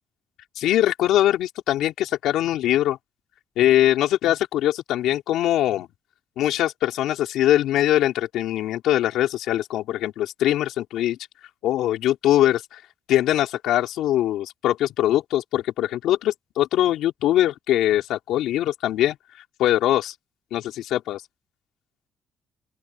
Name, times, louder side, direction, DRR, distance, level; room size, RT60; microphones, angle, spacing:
voice 1, 0.6-3.0 3.6-5.9 6.4-11.2 11.6-12.8 13.1-19.2 19.6-20.1 20.5-21.2, left 13 dB, 85° left, 4.4 m, -22 dB
open air
cardioid pair, 90°, 0 cm